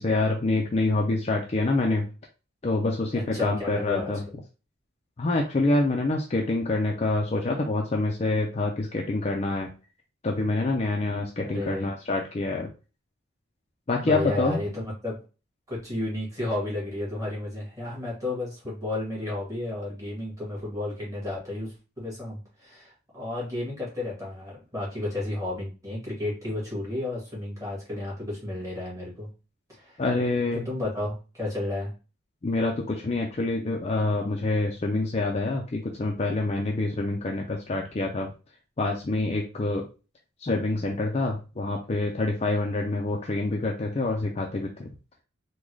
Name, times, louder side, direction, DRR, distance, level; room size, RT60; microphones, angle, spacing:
voice 1, 0.0-2.1 2.6-4.2 5.2-9.7 10.2-12.7 13.9-14.6 30.0-30.7 32.4-38.3 38.8-39.9 40.4-44.9, left 2 dB, 30° left, 0 dB, 0.4 m, -26 dB
voice 2, 3.3-4.1 11.5-11.9 14.0-15.2 15.7-29.3 29.8-30.0 30.6-31.9, left 2 dB, 15° right, -5 dB, 1.6 m, -32 dB
3.7 x 2.2 x 3.1 m, 0.32 s
head